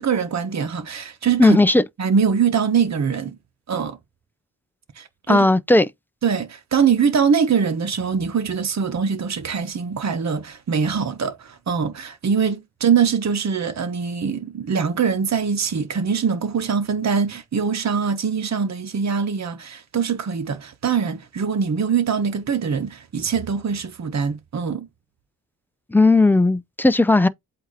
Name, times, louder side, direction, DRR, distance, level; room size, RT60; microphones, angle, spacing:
voice 1, 0.0-1.6 2.0-3.4 3.7-4.0 5.0-5.5 6.2-24.9, right 6 dB, 55° right, 1.2 m, -23 dB
voice 2, 1.4-1.8 5.3-5.9 25.9-27.3, left 2 dB, 5° left, 0.6 m, -15 dB
8.1 x 2.9 x 4.1 m
cardioid pair, 70°, 33 cm